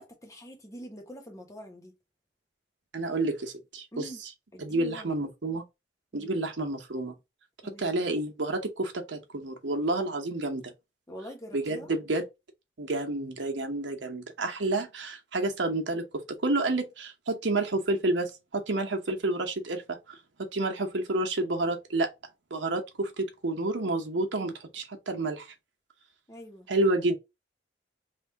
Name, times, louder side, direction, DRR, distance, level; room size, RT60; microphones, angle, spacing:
voice 1, 0.0-2.0 3.9-4.2 4.5-5.1 6.1-6.3 7.6-7.8 11.1-12.0 26.3-26.7, equal, 15° left, 1.1 m, -44 dB
voice 2, 2.9-4.1 4.6-5.6 6.1-7.1 7.6-10.7 11.5-12.2 12.8-22.1 22.5-25.5 26.7-27.1, right 2 dB, 85° right, 0.9 m, -30 dB
3.3 x 2.6 x 4.5 m
head